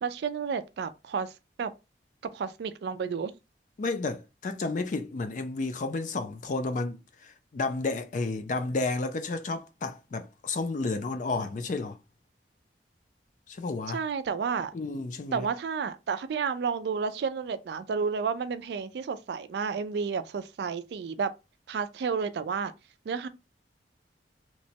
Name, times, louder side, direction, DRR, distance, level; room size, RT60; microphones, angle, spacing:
voice 1, 0.0-1.3 1.6-1.7 2.3-3.3 13.9-14.7 15.3-21.3 21.7-22.7 23.1-23.3, right 6 dB, 65° right, 0.3 m, -31 dB
voice 2, 3.8-12.0 13.5-14.0 14.7-15.5, left 3 dB, 45° left, 0.4 m, -31 dB
2.9 x 2.1 x 2.7 m
head